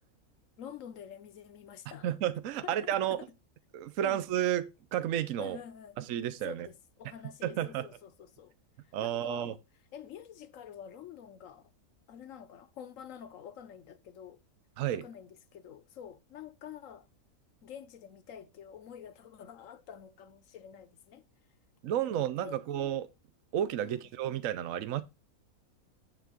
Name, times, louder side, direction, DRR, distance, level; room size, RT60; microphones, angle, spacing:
voice 1, 0.6-2.2 2.6-3.2 4.0-4.2 5.4-6.0 6.4-8.5 9.0-9.6 9.9-11.6 12.1-14.4 14.9-17.1 17.6-21.2 22.1-22.6 23.8-24.0, left 8 dB, 65° left, 1.0 m, -48 dB
voice 2, 2.0-3.2 3.7-5.6 6.0-6.7 7.4-7.9 8.9-9.5 14.8-15.0 21.8-23.1 23.5-25.0, right 11 dB, 65° right, 1.0 m, -32 dB
10.0 x 3.4 x 6.2 m
omnidirectional pair, 1.6 m